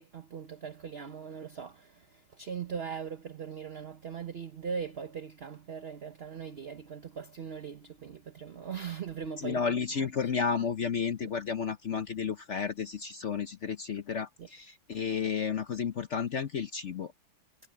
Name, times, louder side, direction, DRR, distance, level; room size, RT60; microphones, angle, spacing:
voice 1, 0.0-9.6 10.0-10.3 11.2-11.3 14.4-14.5, right 6 dB, 45° right, 0.8 m, -40 dB
voice 2, 9.4-17.1, left 6 dB, 55° left, 0.8 m, -32 dB
omnidirectional pair, 2.2 m